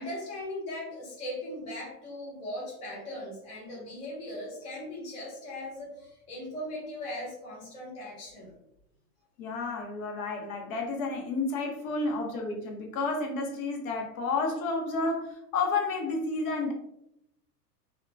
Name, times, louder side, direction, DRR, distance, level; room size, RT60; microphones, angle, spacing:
voice 1, 0.0-8.5, left 1 dB, 15° left, -4 dB, 0.4 m, -39 dB
voice 2, 9.4-16.7, left 3 dB, 55° left, 2 dB, 0.8 m, -31 dB
2.8 x 2.3 x 2.3 m, 0.79 s
hypercardioid pair, 125°, 50 cm